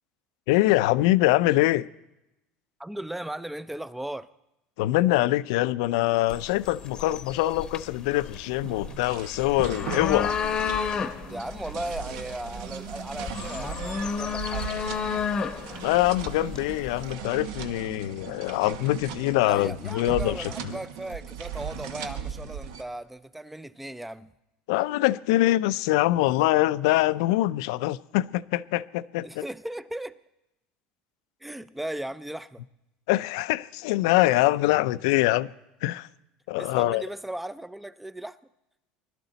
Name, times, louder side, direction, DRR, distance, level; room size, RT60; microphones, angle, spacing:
voice 1, 0.5-1.9 4.8-10.4 15.8-20.5 24.7-29.4 33.1-35.5 35.8-36.1 36.5-37.0, left 17 dB, 85° left, 0.4 m, -24 dB
voice 2, 2.8-4.3 11.3-14.8 19.4-24.3 29.2-30.2 31.4-32.6 36.6-38.4, right 1 dB, 5° right, 0.4 m, -37 dB
sound 1, 6.3-17.1, left 6 dB, 25° left, 0.8 m, -32 dB
sound 2, 8.1-22.8, right 8 dB, 80° right, 1.0 m, -38 dB
21.0 x 12.0 x 4.0 m
cardioid pair, 145°, 3 cm